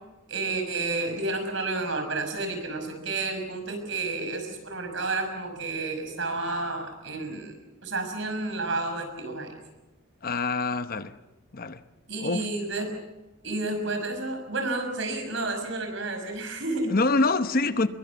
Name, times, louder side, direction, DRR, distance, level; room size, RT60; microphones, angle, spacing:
voice 1, 0.3-7.5 7.8-9.5 12.1-12.9 13.4-17.0, right 2 dB, 65° right, 6.0 m, -31 dB
voice 2, 10.2-11.1 11.5-11.8 12.2-12.5 16.9-17.9, left 3 dB, 45° left, 1.0 m, -25 dB
25.0 x 22.5 x 7.2 m
head